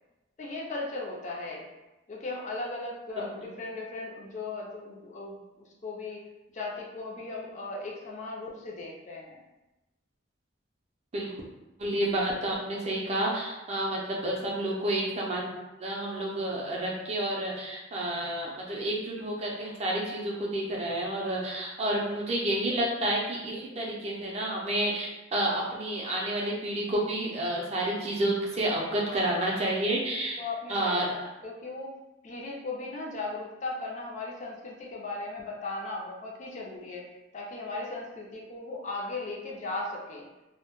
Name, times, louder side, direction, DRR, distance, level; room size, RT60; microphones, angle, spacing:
voice 1, 0.4-1.6 2.1-6.2 6.5-9.4 28.9-29.5 29.8-29.9 30.4-31.0 31.4-31.9 32.2-37.1 37.3-40.2, left 2 dB, 40° left, -1 dB, 0.4 m, -37 dB
voice 2, 11.8-15.5 15.8-31.1, right 1 dB, 30° right, -2 dB, 0.4 m, -30 dB
2.1 x 2.0 x 2.9 m, 1.0 s
head